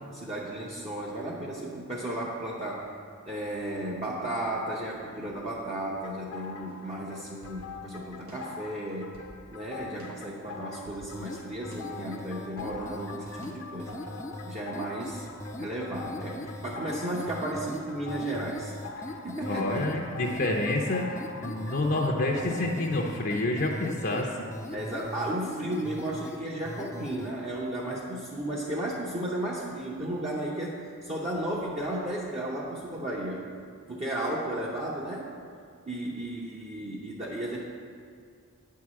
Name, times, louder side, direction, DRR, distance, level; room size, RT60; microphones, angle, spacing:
voice 1, 0.1-2.9 3.3-9.2 9.5-14.0 14.4-15.2 15.6-20.0 24.7-33.5 33.9-35.3 35.9-37.6, right 1 dB, 30° right, -5 dB, 0.8 m, -34 dB
sound 1, 6.0-22.7, left 4 dB, 85° left, 1.0 m, -44 dB
sound 2, 6.7-7.6 8.3-9.4 10.0-11.1 11.7-12.8 13.4-13.6, right 1 dB, 75° right, 1.5 m, -49 dB
sound 3, 11.1-27.3, left 1 dB, 15° left, 0.4 m, -41 dB
voice 2, 19.5-24.3, left 2 dB, 45° left, 0 dB, 0.6 m, -28 dB
9.1 x 4.7 x 7.4 m, 2.3 s
head